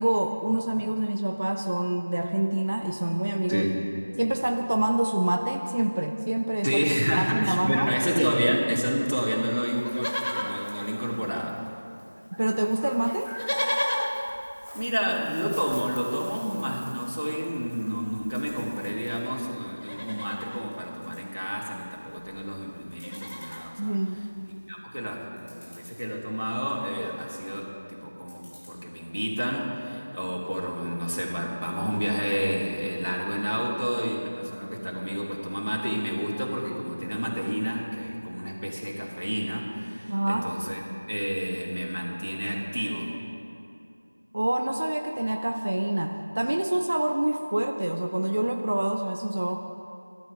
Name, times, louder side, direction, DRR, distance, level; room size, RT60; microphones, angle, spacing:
voice 1, 0.0-3.6 4.2-6.8 7.2-7.9 12.4-13.3 23.8-24.3 40.1-40.5 44.3-49.6, right 1 dB, 30° right, 4 dB, 0.4 m, -26 dB
voice 2, 6.6-11.6 14.7-23.9 24.7-40.8 41.1-43.1, equal, 90° right, -2 dB, 3.0 m, -29 dB
Livestock farm animals working animals, 9.7-11.7 12.0-12.1 12.3-19.3 19.7-20.6 21.8-21.9 22.1-22.4 22.7-23.7 24.3-24.4, equal, 50° left, 1.4 m, -35 dB
sound 1, 18.3-18.7 19.2-20.0 20.4-21.2 21.7-22.2 22.5-22.6 22.9-23.6 24.2-24.5 25.1-25.2 25.4-26.1 26.6-27.1 28.3-28.7, equal, 30° left, 3.1 m, -52 dB
13.5 x 11.5 x 5.0 m, 2.7 s
figure-of-eight pair, 180°, 0 cm